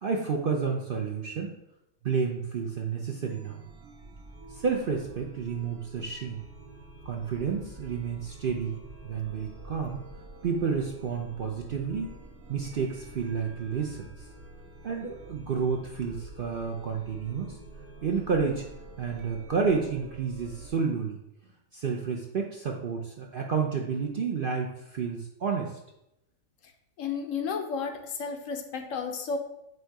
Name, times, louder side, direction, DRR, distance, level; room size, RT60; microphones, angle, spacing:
voice 1, 0.0-1.5 2.0-3.6 4.5-6.5 7.0-10.0 10.4-12.1 12.5-14.1 14.8-17.6 18.0-18.6 19.0-21.2 21.7-25.8, right 5 dB, 55° right, 0 dB, 0.6 m, -30 dB
Chime, 3.2-20.7, right 1 dB, 80° right, 1.7 m, -48 dB
voice 2, 27.0-29.4, left 5 dB, 70° left, 6 dB, 0.9 m, -32 dB
7.9 x 2.7 x 4.6 m, 0.83 s
omnidirectional pair, 1.5 m